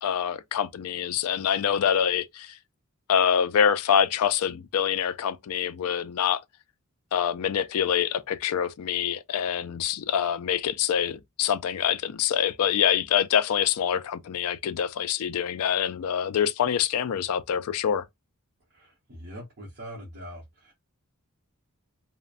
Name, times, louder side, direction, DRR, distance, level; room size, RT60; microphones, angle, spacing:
voice 1, 0.0-2.5 3.1-6.4 7.1-18.0, left 8 dB, 75° left, 0.4 m, -25 dB
voice 2, 18.8-20.7, equal, 50° right, 1.1 m, -42 dB
3.1 x 2.1 x 2.4 m
head